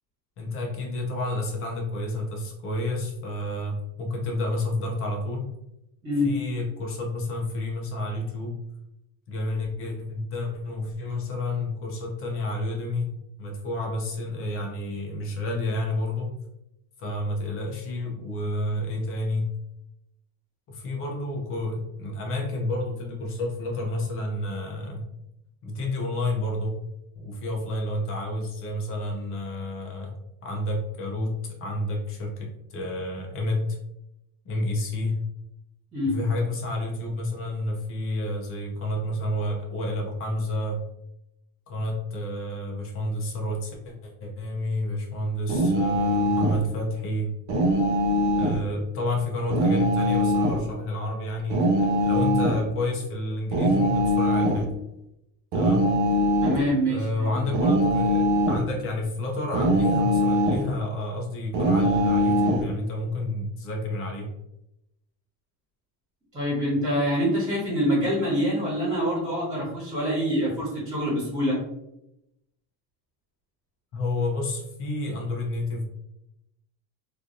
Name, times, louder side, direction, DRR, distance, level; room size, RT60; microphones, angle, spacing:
voice 1, 0.4-5.5 6.2-8.6 9.3-13.1 13.4-16.4 17.0-19.5 20.7-25.1 25.6-26.8 27.2-30.1 30.4-33.6 34.4-35.2 36.0-40.8 41.7-47.3 48.4-54.7 55.5-55.9 56.9-64.3 73.9-75.8, left 1 dB, 35° left, 0 dB, 0.7 m, -30 dB
sound 1, 45.5-46.6 47.5-48.6 49.5-50.6 51.5-52.6 53.5-54.6 55.5-56.6 57.5-58.7 59.5-60.7 61.5-62.6, equal, 50° right, 0.5 m, -22 dB
voice 2, 56.4-57.4 66.3-71.6, equal, 15° right, -9 dB, 1.5 m, -25 dB
3.0 x 2.5 x 2.6 m, 0.85 s
cardioid pair, 170°, 40 cm